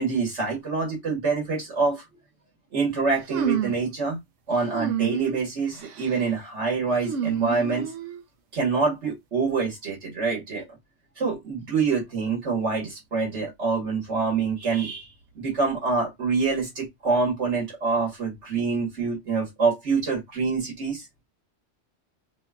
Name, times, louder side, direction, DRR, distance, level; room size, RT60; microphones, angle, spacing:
voice 1, 0.0-2.0 2.7-4.2 4.5-7.9 8.5-10.6 11.2-15.1 15.3-21.1, right 4 dB, 70° right, 1.5 m, -26 dB
sound 1, 3.3-3.9 4.7-5.4 5.8-6.2 7.0-8.2, right 8 dB, 90° right, 1.0 m, -29 dB
3.1 x 2.3 x 3.4 m
omnidirectional pair, 1.3 m